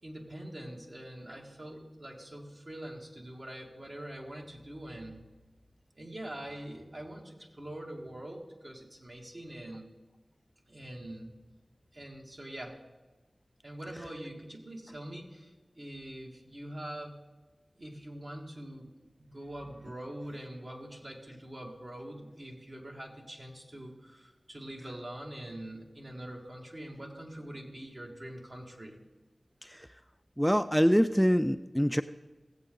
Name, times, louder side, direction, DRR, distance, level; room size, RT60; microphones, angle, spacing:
voice 1, 0.0-5.2 6.0-9.9 10.7-11.4 11.9-12.8 13.6-17.2 17.8-29.0, right 1 dB, 55° right, -1 dB, 2.0 m, -44 dB
voice 2, 30.4-32.0, equal, ahead, 10 dB, 0.3 m, -24 dB
16.5 x 8.0 x 3.8 m, 1.2 s
wide cardioid pair, 40°, 0 cm